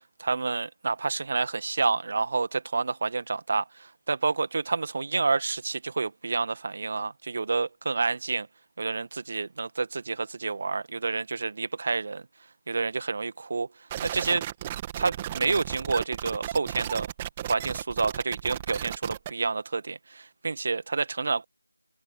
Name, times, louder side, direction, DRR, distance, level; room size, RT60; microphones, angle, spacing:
voice 1, 0.2-8.5 8.8-12.2 12.7-13.7 14.0-14.4 15.0-17.1 17.5-21.4, right 4 dB, 30° right, 2.0 m, -29 dB
sound 1, 13.9-19.3, right 12 dB, 10° right, 2.6 m, -35 dB
open air
figure-of-eight pair, 170°, 0 cm